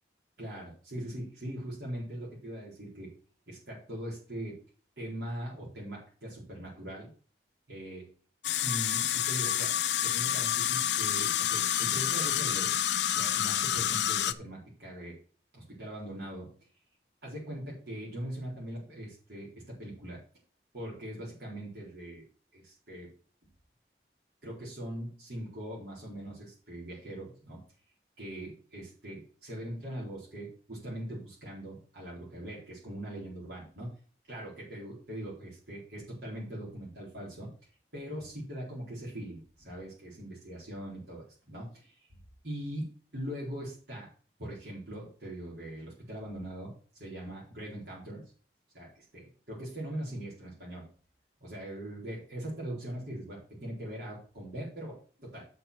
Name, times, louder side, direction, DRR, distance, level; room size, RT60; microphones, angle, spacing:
voice 1, 0.4-3.1 3.5-4.6 5.0-7.1 7.7-8.1 8.6-9.7 10.0-12.7 13.1-15.2 15.5-16.5 17.2-20.2 20.7-22.2 22.5-23.1 24.4-27.6 28.2-33.9 34.3-37.5 37.9-42.2 42.4-44.1 44.4-48.2 48.7-50.9 51.4-55.5, right 1 dB, 70° right, -5 dB, 4.3 m, -41 dB
sound 1, 8.4-14.3, left 11 dB, 80° left, 0.6 m, -28 dB
8.4 x 5.6 x 6.3 m, 0.41 s
head